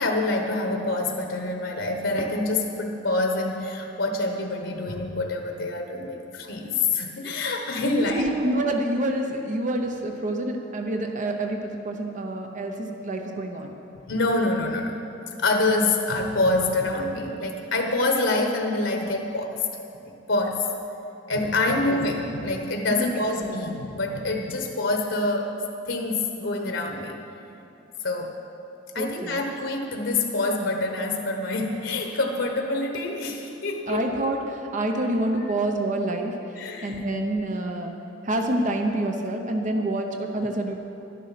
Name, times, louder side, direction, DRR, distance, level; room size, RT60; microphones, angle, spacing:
voice 1, 0.0-8.2 14.1-15.0 15.4-19.6 20.0-20.7 21.3-27.2 28.0-28.4 28.9-34.1 35.4-35.5 36.6-37.0, left 2 dB, 85° left, 3 dB, 1.1 m, -26 dB
voice 2, 7.8-13.8 21.9-22.0 29.0-29.5 33.9-36.4 36.8-37.9 38.2-40.7, right 1 dB, 45° right, 3 dB, 0.8 m, -27 dB
11.5 x 10.0 x 5.9 m, 2.8 s
head